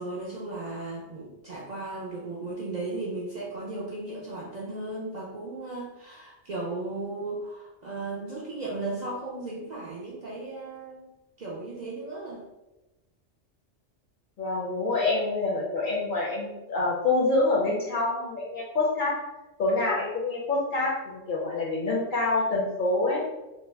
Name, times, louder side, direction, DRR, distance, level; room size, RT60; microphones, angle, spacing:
voice 1, 0.0-11.1 11.4-12.4, right 2 dB, 55° right, -6 dB, 0.5 m, -36 dB
voice 2, 14.4-19.1 19.6-23.2, left 2 dB, 55° left, -3 dB, 0.6 m, -26 dB
2.7 x 2.1 x 3.2 m, 1.0 s
omnidirectional pair, 1.2 m